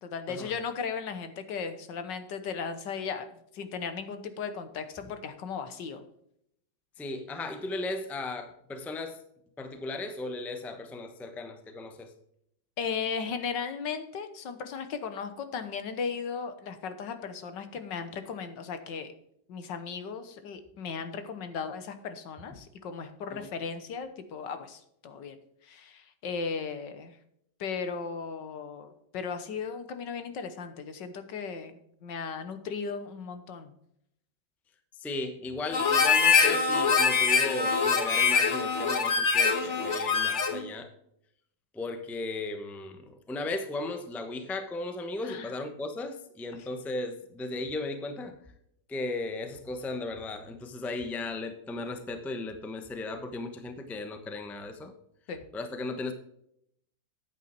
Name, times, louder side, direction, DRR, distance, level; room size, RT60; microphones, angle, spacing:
voice 1, 0.0-3.3 3.5-6.0 12.8-19.1 19.5-25.4 25.6-27.2 27.6-33.7 45.2-45.5 46.5-46.7 55.3-55.4, left 5 dB, 75° left, 9 dB, 1.7 m, -36 dB
voice 2, 7.0-9.2 9.6-12.1 23.3-23.5 35.0-40.9 41.7-48.4 48.9-54.9 55.5-56.1, left 2 dB, ahead, 7 dB, 0.6 m, -36 dB
Harmonica, 35.7-40.6, left 5 dB, 45° left, 1.5 m, -24 dB
9.2 x 8.6 x 4.5 m, 0.73 s
omnidirectional pair, 2.0 m